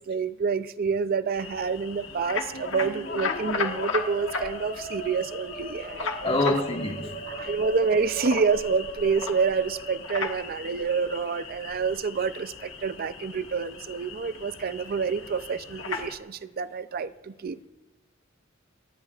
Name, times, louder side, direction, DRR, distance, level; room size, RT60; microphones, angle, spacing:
voice 1, 0.1-6.6 7.3-17.7, right 5 dB, 50° right, 0.5 m, -28 dB
sound 1, 1.3-16.2, left 5 dB, 80° left, 1.5 m, -36 dB
Musical instrument, 2.0-10.8, right 1 dB, 50° left, 2.2 m, -40 dB
voice 2, 6.2-7.4, left 2 dB, 30° left, 1.6 m, -27 dB
27.0 x 15.0 x 2.4 m
head